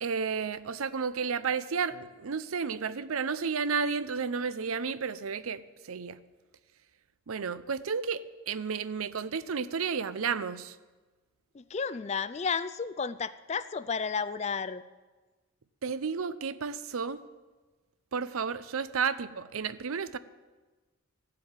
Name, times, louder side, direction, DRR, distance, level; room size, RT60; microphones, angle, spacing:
voice 1, 0.0-6.2 7.3-10.8 15.8-17.2 18.1-20.2, right 5 dB, 80° right, 15 dB, 0.6 m, -32 dB
voice 2, 11.5-14.8, left 5 dB, 30° left, 14 dB, 0.4 m, -32 dB
14.5 x 7.6 x 8.9 m, 1.3 s
head